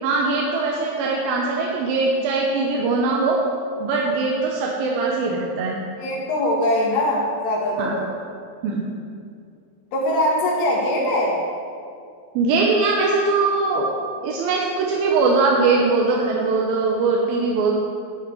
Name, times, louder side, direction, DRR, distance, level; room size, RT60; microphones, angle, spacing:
voice 1, 0.0-3.4 3.8-5.8 7.8-7.9 8.6-8.8 12.4-13.9 14.2-17.7, right 3 dB, 75° right, -2 dB, 2.4 m, -21 dB
voice 2, 6.0-8.1 9.9-11.4, left 1 dB, 85° left, -4 dB, 3.6 m, -22 dB
10.5 x 8.3 x 4.6 m, 2.3 s
omnidirectional pair, 4.7 m